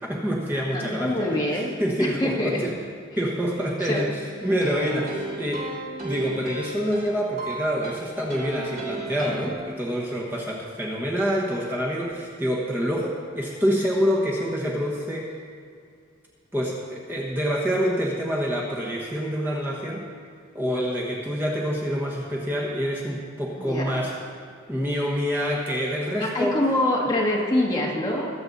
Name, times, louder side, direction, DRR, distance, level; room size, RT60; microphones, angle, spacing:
voice 1, 0.0-2.8 3.2-5.7 6.0-15.3 16.5-20.1 20.5-24.1 24.7-26.6, equal, 10° right, -4 dB, 1.2 m, -27 dB
voice 2, 0.7-1.7 2.0-2.7 3.8-4.1 23.6-24.0 26.2-28.3, left 1 dB, 20° left, -4 dB, 1.9 m, -25 dB
sound 1, 4.4-9.5, right 2 dB, 50° right, 3.2 m, -35 dB
23.5 x 7.9 x 4.1 m, 2.4 s
head